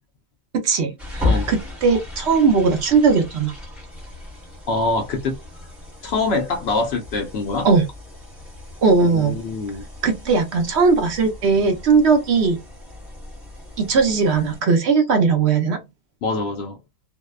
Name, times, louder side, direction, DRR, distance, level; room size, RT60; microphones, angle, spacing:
voice 1, 0.5-3.5 7.6-7.8 8.8-9.3 10.0-12.6 13.8-15.8, right 4 dB, 60° right, 0.9 m, -18 dB
sound 1, 1.0-14.6, left 2 dB, ahead, 0.8 m, -34 dB
voice 2, 4.7-5.4 6.0-7.7 9.0-9.9 16.2-16.8, left 3 dB, 65° left, 0.8 m, -24 dB
2.6 x 2.1 x 2.3 m
omnidirectional pair, 1.4 m